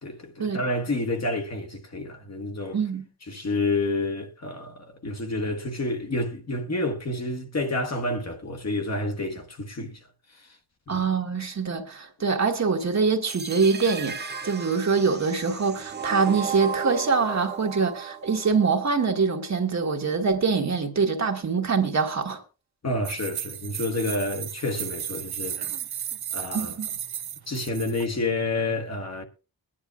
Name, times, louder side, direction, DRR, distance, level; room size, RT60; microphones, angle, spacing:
voice 1, 0.0-2.8 3.3-10.0 10.9-11.0 22.8-25.6 26.3-26.7 27.5-29.2, left 2 dB, 45° left, 1.4 m, -29 dB
voice 2, 2.7-3.1 10.9-22.4 26.5-26.9, right 5 dB, 45° right, 1.5 m, -24 dB
sound 1, 13.3-19.3, right 6 dB, 30° right, 0.6 m, -35 dB
sound 2, 23.0-28.1, right 10 dB, 85° right, 0.9 m, -34 dB
22.0 x 10.0 x 2.4 m
wide cardioid pair, 175°, 37 cm